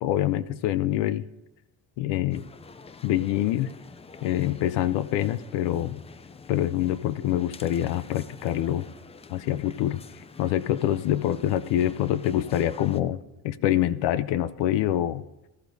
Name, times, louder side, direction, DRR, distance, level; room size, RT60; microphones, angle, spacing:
voice 1, 0.0-1.3 2.0-2.5 3.0-3.7 4.2-6.0 6.5-8.9 9.3-10.0 10.4-13.2 13.4-15.2, left 12 dB, 75° left, 15 dB, 0.6 m, -25 dB
sound 1, 2.3-13.0, left 4 dB, 15° left, 0.3 m, -47 dB
20.0 x 12.5 x 2.7 m, 1.0 s
cardioid pair, 125°, 42 cm